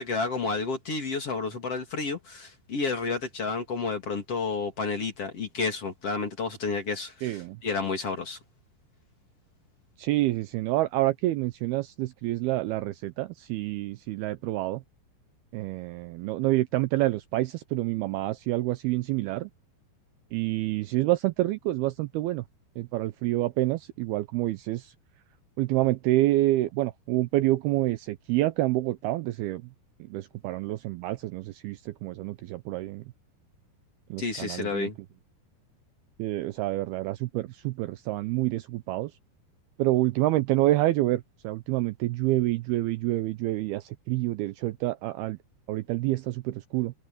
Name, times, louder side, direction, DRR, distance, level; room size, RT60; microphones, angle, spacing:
voice 1, 0.0-8.4 34.2-35.0, left 4 dB, 35° left, 3.5 m, -31 dB
voice 2, 7.2-7.6 10.0-14.8 15.5-19.5 20.3-22.4 22.8-24.9 25.6-29.6 30.1-33.0 34.1-34.9 36.2-39.1 39.8-45.4 45.7-46.9, right 17 dB, 80° right, 2.4 m, -27 dB
omnidirectional pair, 5.0 m